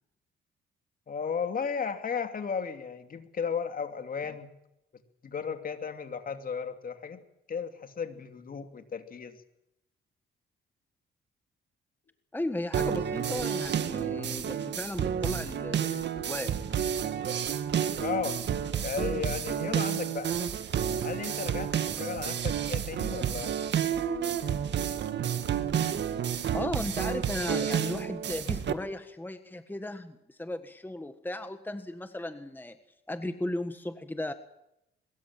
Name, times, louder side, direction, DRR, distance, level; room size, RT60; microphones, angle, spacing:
voice 1, 1.1-4.5 5.2-7.2 7.5-9.4 17.8-18.4 18.8-20.3 21.0-23.5, left 6 dB, 45° left, 7 dB, 2.8 m, -35 dB
voice 2, 12.3-16.5 26.5-32.8 33.1-34.3, left 1 dB, 10° left, 9 dB, 1.5 m, -36 dB
sound 1, 12.7-28.7, right 8 dB, 60° right, 1.9 m, -30 dB
22.5 x 21.5 x 7.6 m, 0.85 s
cardioid pair, 90°, 20 cm